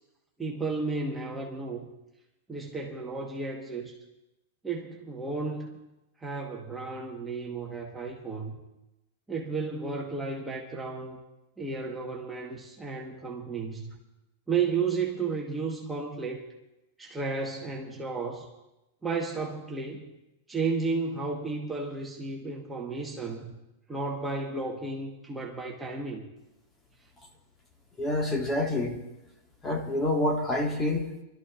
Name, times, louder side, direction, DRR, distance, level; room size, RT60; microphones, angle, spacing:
voice 1, 0.4-1.9 2.5-4.0 4.6-5.8 6.2-8.6 9.3-11.2 11.6-14.0 14.5-16.4 17.0-18.5 19.0-20.0 20.5-23.5 23.9-26.3, right 4 dB, 10° right, -2 dB, 1.3 m, -33 dB
voice 2, 28.0-29.0 29.6-31.1, left 1 dB, 20° left, 1 dB, 1.8 m, -27 dB
27.5 x 12.5 x 2.5 m, 0.95 s
hypercardioid pair, 130°, 0 cm